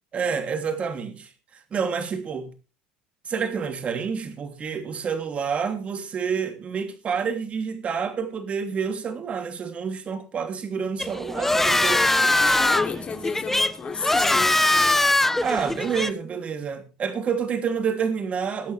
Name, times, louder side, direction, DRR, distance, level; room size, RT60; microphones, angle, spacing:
voice 1, 0.1-2.5 3.2-12.1 15.4-18.7, right 6 dB, 35° right, 3.0 m, -28 dB
sound 1, 11.0-16.1, left 2 dB, 10° left, 0.9 m, -22 dB
voice 2, 11.9-15.1, left 6 dB, 35° left, 3.3 m, -32 dB
21.5 x 8.5 x 3.4 m
supercardioid pair, 95°, 4 cm